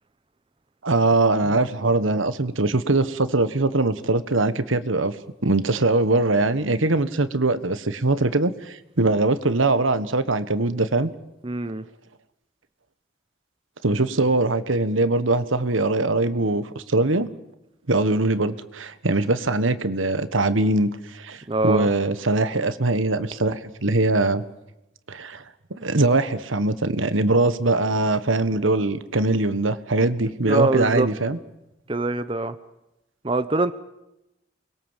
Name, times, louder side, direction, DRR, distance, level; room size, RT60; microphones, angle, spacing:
voice 1, 0.8-5.1 5.4-11.1 13.8-17.3 17.9-24.4 25.1-25.4 25.8-31.4, right 2 dB, 85° right, 12 dB, 1.4 m, -22 dB
voice 2, 11.4-11.8 21.5-21.9 30.5-31.1 31.9-32.5 33.2-33.7, right 2 dB, 25° right, 11 dB, 0.8 m, -23 dB
29.0 x 21.5 x 7.4 m, 0.93 s
head